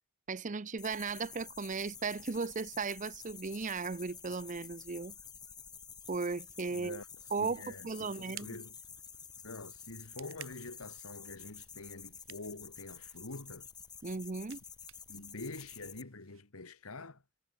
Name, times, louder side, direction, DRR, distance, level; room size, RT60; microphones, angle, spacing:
voice 1, 0.3-5.1 6.1-7.0 7.3-8.6 14.0-14.6, right 4 dB, 35° right, 0.6 m, -36 dB
sound 1, 0.8-16.0, left 6 dB, 20° left, 3.0 m, -50 dB
voice 2, 6.7-7.1 7.4-8.8 9.4-13.7 15.1-17.2, left 2 dB, 85° left, 2.0 m, -46 dB
sound 2, 7.2-16.4, right 13 dB, 65° right, 1.9 m, -57 dB
head